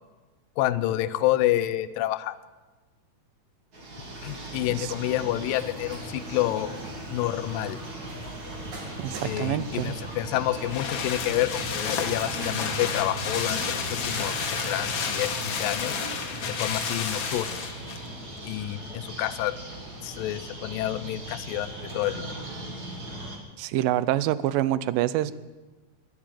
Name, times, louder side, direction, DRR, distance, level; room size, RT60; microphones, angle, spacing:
voice 1, 0.6-2.4 4.2-6.7 7.1-7.8 9.2-16.0 16.6-17.6 18.4-19.6 20.0-22.3, left 14 dB, 90° left, 12 dB, 2.3 m, -28 dB
sound 1, 3.7-23.4, right 1 dB, 35° right, 1.8 m, -38 dB
sound 2, 5.5-14.8, right 2 dB, 60° right, 3.6 m, -45 dB
voice 2, 9.0-9.9 23.6-25.3, right 13 dB, 85° right, 17 dB, 2.2 m, -26 dB
sound 3, 9.9-18.1 18.4-18.5, left 6 dB, 60° left, 1.3 m, -31 dB
12.0 x 11.0 x 9.1 m, 1.2 s
omnidirectional pair, 3.9 m